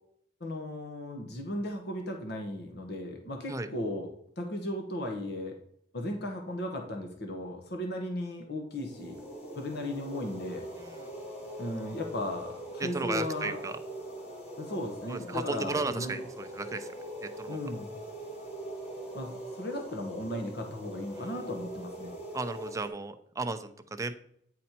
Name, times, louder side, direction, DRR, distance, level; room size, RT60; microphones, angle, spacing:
voice 1, 0.4-4.1 4.4-5.6 5.9-9.2 9.5-10.7 11.6-13.6 14.6-16.2 17.5-17.9 19.1-22.1, left 1 dB, 65° left, 3 dB, 1.1 m, -36 dB
sound 1, 8.7-22.9, right 1 dB, 35° left, 1.9 m, -42 dB
voice 2, 12.8-13.8 15.1-16.9 17.2-17.7 21.1-21.3 22.3-24.1, right 3 dB, 20° right, 8 dB, 0.6 m, -35 dB
9.6 x 4.2 x 4.3 m, 0.70 s
head